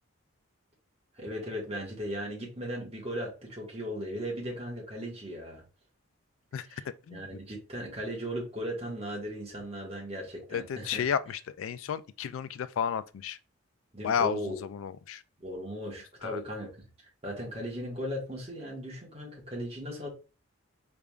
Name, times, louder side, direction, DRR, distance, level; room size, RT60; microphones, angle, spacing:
voice 1, 1.1-5.6 6.7-6.8 7.1-11.0 13.9-14.6 15.4-20.1, equal, 30° right, 1.5 m, -37 dB
voice 2, 6.5-7.2 10.5-13.4 14.0-15.2 16.2-16.4, left 7 dB, 75° left, 0.3 m, -32 dB
4.9 x 3.4 x 2.4 m
head